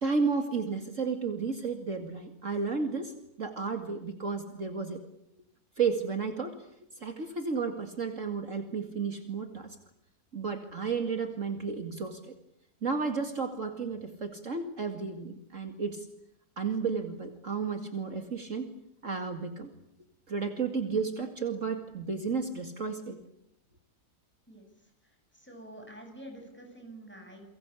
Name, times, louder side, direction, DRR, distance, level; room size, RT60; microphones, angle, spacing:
voice 1, 0.0-5.0 5.8-6.7 7.0-9.8 10.3-12.3 12.8-16.1 16.6-18.7 19.0-19.7 20.3-23.2, right 5 dB, 50° right, 6 dB, 2.6 m, -32 dB
voice 2, 25.0-27.4, right 1 dB, 5° left, 3 dB, 8.0 m, -48 dB
30.0 x 23.0 x 8.5 m, 0.75 s
omnidirectional pair, 1.7 m